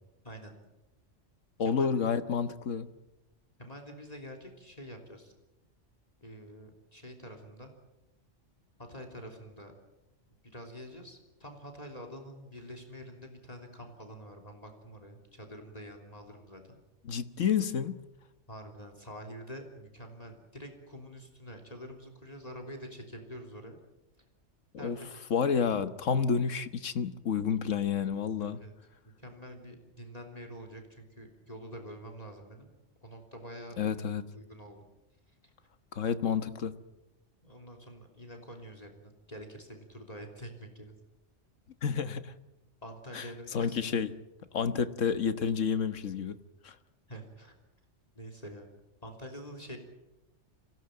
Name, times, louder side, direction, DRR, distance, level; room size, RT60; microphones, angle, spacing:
voice 1, 0.2-0.6 1.6-1.9 3.6-5.3 6.2-7.7 8.9-9.7 10.5-16.8 18.5-23.8 24.8-25.3 28.4-28.7 29.0-32.7 33.0-33.8 34.3-34.8 35.4-35.5 37.4-40.9 42.8-43.8 47.1-47.5 48.2-48.7 49.0-49.8, equal, 30° left, 5 dB, 3.4 m, -46 dB
voice 2, 1.6-2.9 17.1-18.0 24.8-25.0 25.3-28.6 33.8-34.3 35.9-36.8 41.8-42.3 43.1-43.2 43.5-44.2 44.5-46.4 46.6-46.7, left 6 dB, 85° left, 11 dB, 1.6 m, -30 dB
26.0 x 17.0 x 9.0 m, 0.96 s
omnidirectional pair, 1.3 m